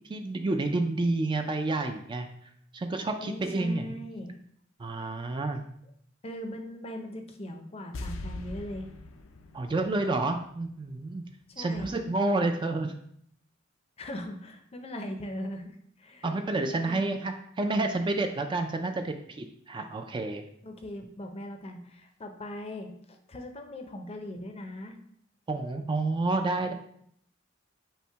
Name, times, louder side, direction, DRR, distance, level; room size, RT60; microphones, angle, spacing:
voice 1, 0.0-2.3 2.7-4.0 4.8-5.6 9.5-11.2 11.6-12.9 16.2-20.4 25.5-26.7, right 2 dB, 25° right, 5 dB, 0.3 m, -29 dB
voice 2, 3.2-4.4 6.2-8.9 11.5-11.9 14.0-16.3 16.8-17.1 20.6-25.0, left 1 dB, 30° left, 5 dB, 0.5 m, -40 dB
sound 1, 7.9-11.1 11.4-11.5, left 2 dB, 85° left, 0.5 m, -42 dB
5.5 x 2.1 x 4.4 m, 0.68 s
head